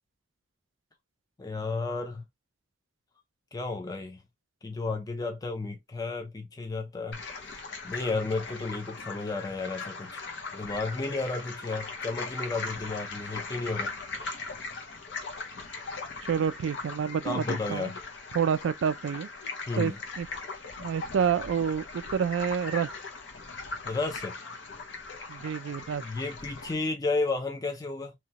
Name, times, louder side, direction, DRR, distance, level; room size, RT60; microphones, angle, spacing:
voice 1, 1.4-2.2 3.5-4.2 4.6-7.2 7.5-7.6 7.8-10.2 10.5-13.9 17.2-18.0 19.7-20.0 23.8-24.3 26.0-28.1, left 3 dB, 20° left, 0.4 m, -32 dB
sound 1, 7.1-26.7, left 4 dB, 65° left, 0.6 m, -39 dB
voice 2, 16.3-17.9 18.3-19.3 19.8-20.3 20.8-22.9 25.3-26.0, right 7 dB, 75° right, 0.3 m, -28 dB
2.9 x 2.2 x 2.7 m
head